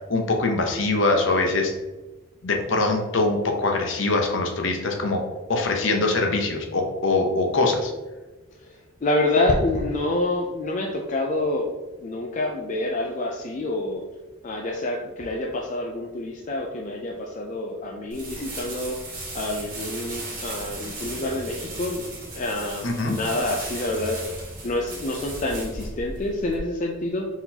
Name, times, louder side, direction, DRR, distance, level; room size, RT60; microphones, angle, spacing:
voice 1, 0.1-1.7 2.4-5.2 5.5-7.9 22.8-23.2, left 3 dB, 60° left, 2 dB, 0.7 m, -23 dB
voice 2, 8.6-11.7 12.0-14.0 14.4-22.1 22.3-24.2 24.6-27.3, left 2 dB, 35° left, 0 dB, 0.4 m, -27 dB
sound 1, 18.1-26.6, right 2 dB, 40° right, 1.3 m, -36 dB
4.5 x 3.9 x 2.8 m, 1.2 s
head